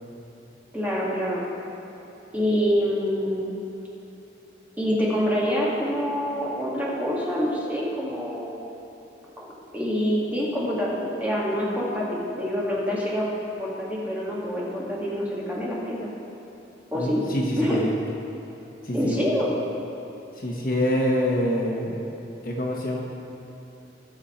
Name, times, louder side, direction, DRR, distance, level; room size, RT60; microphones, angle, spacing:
voice 1, 0.7-1.4 2.3-3.5 4.8-8.6 9.4-9.5 9.7-13.3 13.6-16.1 16.9-17.2 17.6-17.8 18.9-19.6, equal, 10° right, -6 dB, 1.8 m, -26 dB
voice 2, 16.9-17.9 18.8-19.1 20.4-22.0 22.4-23.0, equal, 50° left, -2 dB, 1.5 m, -25 dB
19.0 x 6.8 x 4.4 m, 3.0 s
head